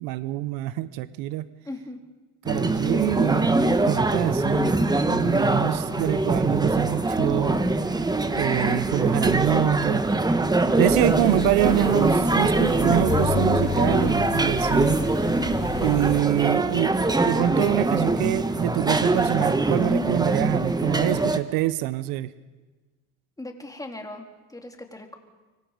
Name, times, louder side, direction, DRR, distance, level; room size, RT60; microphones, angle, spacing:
voice 1, 0.0-1.5 2.5-4.7 5.1-7.6 8.3-10.0 10.8-15.0 15.8-17.0 17.2-22.3, right 16 dB, 70° right, 15 dB, 1.1 m, -25 dB
voice 2, 1.6-2.0 23.4-24.2 24.5-25.2, left 2 dB, 10° left, 3 dB, 3.7 m, -38 dB
sound 1, 2.5-21.4, right 2 dB, 10° right, 1.4 m, -23 dB
sound 2, 10.9-16.2, left 9 dB, 30° left, 0.7 m, -32 dB
25.0 x 24.5 x 5.2 m, 1.2 s
supercardioid pair, 90°, 36 cm